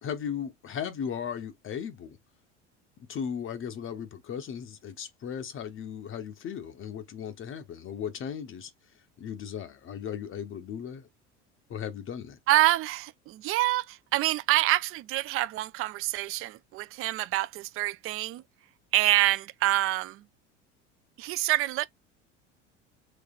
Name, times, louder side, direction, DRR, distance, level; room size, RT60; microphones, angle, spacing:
voice 1, 0.0-2.2 3.1-8.7 9.2-11.1 11.7-12.4, left 8 dB, 35° left, 0.7 m, -36 dB
voice 2, 12.5-18.4 18.9-20.2 21.2-21.9, right 17 dB, 40° right, 0.4 m, -26 dB
5.1 x 3.2 x 2.3 m
hypercardioid pair, 80°, 35 cm